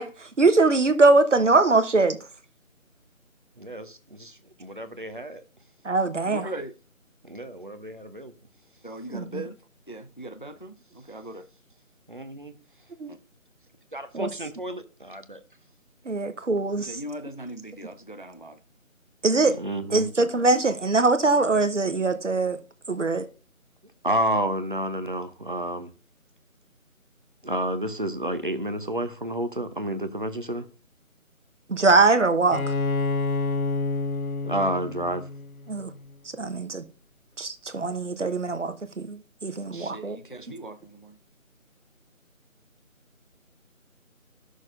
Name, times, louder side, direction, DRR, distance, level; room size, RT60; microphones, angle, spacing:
voice 1, 0.0-2.2 5.8-6.5 9.1-9.4 13.0-13.1 14.1-14.3 16.1-17.0 19.2-19.6 19.9-22.6 22.9-23.2 31.7-32.6 35.7-35.9 36.4-36.8 37.4-40.2, right 3 dB, 60° right, 1.1 m, -22 dB
voice 2, 3.6-5.4 7.2-8.3 12.1-12.5 13.9-15.4 19.4-20.1 24.0-25.9 27.4-30.6 34.4-35.2, right 1 dB, 40° right, 0.8 m, -30 dB
voice 3, 6.3-6.7 8.8-9.6 9.9-11.5 13.1-13.2 16.8-18.6 32.0-32.1 39.7-41.2, right 1 dB, 40° left, 0.5 m, -39 dB
Bowed string instrument, 32.5-36.1, left 3 dB, 85° left, 0.7 m, -29 dB
13.0 x 6.4 x 2.6 m
figure-of-eight pair, 165°, 42 cm